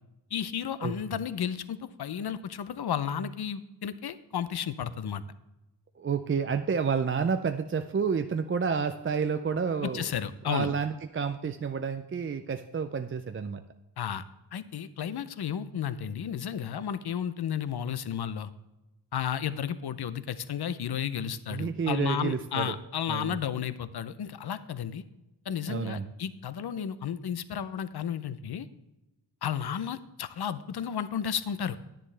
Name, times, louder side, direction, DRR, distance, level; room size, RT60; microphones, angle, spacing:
voice 1, 0.3-5.2 9.8-10.7 14.0-14.2 14.5-18.5 19.1-25.0 25.5-28.7 29.4-31.8, left 8 dB, 55° left, 14 dB, 0.6 m, -33 dB
voice 2, 6.0-10.1 10.5-13.6 21.5-22.8 23.1-23.4 25.7-26.1, right 6 dB, 30° right, 8 dB, 0.3 m, -30 dB
11.0 x 10.0 x 3.3 m, 0.99 s
wide cardioid pair, 140°, 45 cm